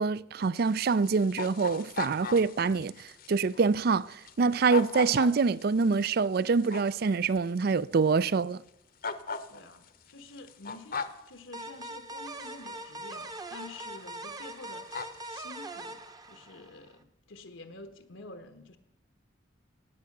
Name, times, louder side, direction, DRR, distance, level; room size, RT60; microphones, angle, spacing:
voice 1, 0.0-8.6, right 4 dB, 50° right, 0.4 m, -26 dB
sound 1, 0.6-7.7 8.2-8.3 9.0-11.3 12.4-12.5 13.1-13.2 13.6-13.8 14.1-14.4 14.6-15.4, left 5 dB, 50° left, 0.9 m, -38 dB
voice 2, 9.5-18.8, left 2 dB, 80° left, 1.2 m, -49 dB
sound 2, 11.5-17.0, right 1 dB, 20° right, 0.9 m, -42 dB
16.5 x 9.3 x 6.6 m
head